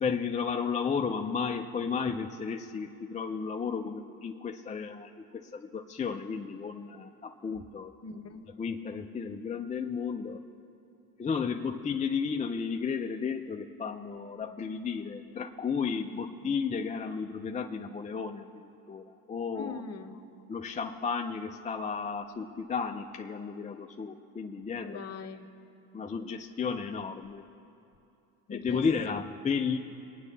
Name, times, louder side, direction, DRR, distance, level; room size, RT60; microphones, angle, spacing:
voice 1, 0.0-7.9 8.6-10.4 11.2-18.5 18.9-19.8 20.5-25.0 25.9-27.4 28.5-29.8, left 5 dB, 20° left, 3 dB, 0.4 m, -33 dB
voice 2, 8.0-8.4 16.4-16.5 19.6-20.2 24.8-25.5 28.5-29.2, left 5 dB, 40° left, 6 dB, 1.0 m, -41 dB
22.0 x 9.3 x 3.3 m, 2.8 s
supercardioid pair, 90°, 40 cm